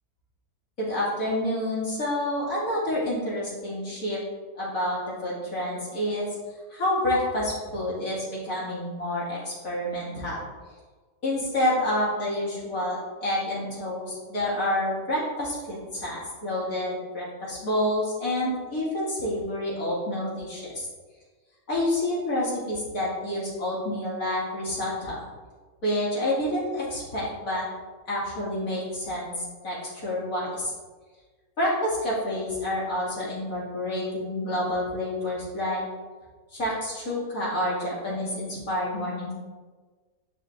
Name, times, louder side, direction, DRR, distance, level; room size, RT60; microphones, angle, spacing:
voice 1, 0.8-4.2 4.5-6.3 6.7-10.4 11.2-20.8 21.7-25.2 25.8-27.7 28.1-29.3 29.6-30.7 31.6-35.8 36.5-39.3, left 1 dB, 65° left, -7 dB, 2.7 m, -28 dB
9.9 x 5.6 x 2.6 m, 1.4 s
omnidirectional pair, 1.6 m